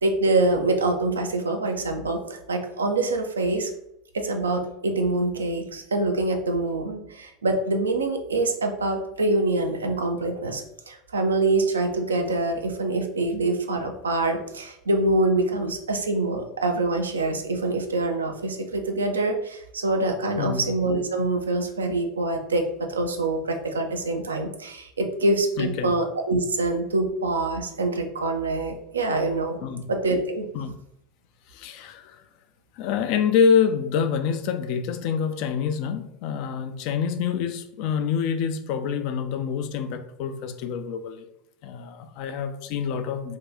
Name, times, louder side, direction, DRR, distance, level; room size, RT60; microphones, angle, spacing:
voice 1, 0.0-3.7 4.1-29.6 29.9-30.5, right 2 dB, 85° right, 4 dB, 0.4 m, -25 dB
voice 2, 20.4-20.7 25.6-25.9 29.6-29.9 30.5-30.7 31.5-32.2 32.8-41.3 41.6-43.4, left 7 dB, 55° left, 8 dB, 0.4 m, -26 dB
2.7 x 2.2 x 3.6 m, 0.79 s
figure-of-eight pair, 80°, 0 cm